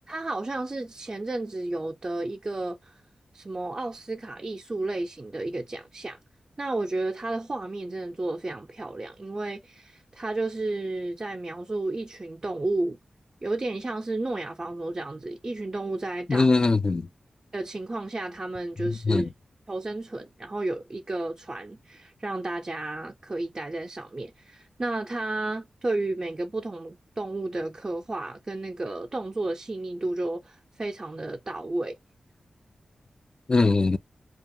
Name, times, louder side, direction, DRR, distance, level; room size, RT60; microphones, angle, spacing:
voice 1, 0.1-3.0 3.3-6.2 6.6-13.0 13.4-16.5 17.5-19.3 19.7-32.0, right 2 dB, 35° right, 0.5 m, -32 dB
voice 2, 16.3-17.1 18.8-19.3 33.5-34.0, left 3 dB, 40° left, 0.3 m, -22 dB
2.4 x 2.3 x 2.7 m
cardioid pair, 50°, 2 cm